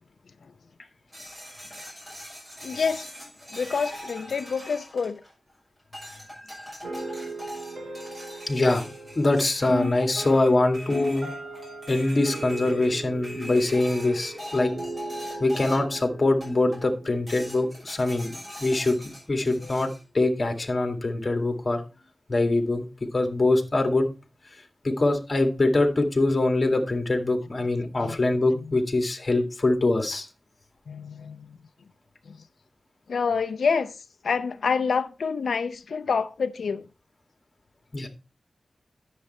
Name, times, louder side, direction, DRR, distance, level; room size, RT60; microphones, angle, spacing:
sound 1, 1.1-5.5 5.9-16.0 16.4-16.9 17.3-20.0, equal, 10° right, 6.1 m, -42 dB
voice 1, 2.6-3.1 3.5-5.2 19.6-19.8 28.0-28.2 28.5-28.8 30.9-31.6 32.3-32.4 33.1-34.0 34.2-36.9, left 5 dB, 90° left, 0.6 m, -27 dB
sound 2, 6.8-17.9, right 3 dB, 65° right, 3.3 m, -40 dB
voice 2, 8.5-8.9 9.2-11.3 11.9-14.7 15.4-18.3 18.6-19.9 20.1-21.8 22.3-22.9 23.1-24.1 24.8-30.3 37.9-38.1, left 2 dB, 35° left, 2.1 m, -23 dB
sound 3, 9.7-10.5 10.9-11.7 12.1-12.7 13.4-14.0 14.6-15.0 15.8-16.0 17.0-17.2 18.2-18.4 19.5-19.6 20.7-20.9 21.9-22.1 23.1-23.2 24.3-24.4, left 2 dB, 40° right, 3.4 m, -38 dB
10.0 x 7.5 x 4.2 m
wide cardioid pair, 130°, 0 cm